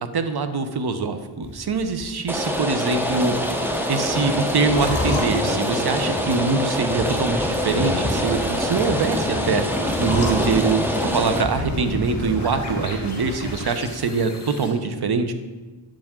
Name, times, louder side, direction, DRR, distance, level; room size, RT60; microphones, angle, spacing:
voice 1, 0.1-3.4 3.9-10.8 11.1-15.3, right 4 dB, 50° right, 8 dB, 0.8 m, -23 dB
sound 1, 1.4-13.5, left 1 dB, 15° left, 2.4 m, -35 dB
Rain, 2.3-11.4, equal, 5° right, 0.8 m, -25 dB
sound 2, 3.0-14.7, left 1 dB, 35° left, 2.2 m, -32 dB
9.0 x 7.2 x 3.7 m, 1.3 s
wide cardioid pair, 90°, 50 cm